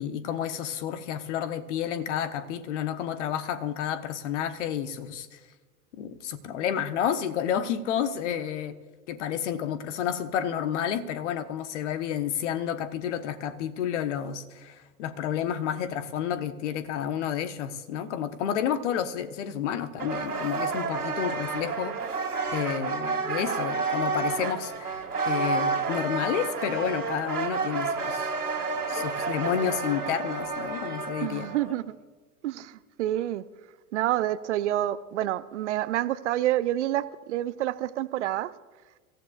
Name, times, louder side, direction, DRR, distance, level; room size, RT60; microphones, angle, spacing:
voice 1, 0.0-5.4 6.0-8.8 9.1-22.2 22.5-28.3 28.6-31.5, left 9 dB, 50° left, 11 dB, 1.3 m, -30 dB
sound 1, 20.0-31.7, right 4 dB, 80° right, 2.3 m, -30 dB
voice 2, 31.2-32.0 32.4-33.4 33.9-38.5, right 13 dB, 50° right, 15 dB, 0.7 m, -28 dB
28.0 x 15.0 x 2.5 m, 1.3 s
figure-of-eight pair, 95°, 45 cm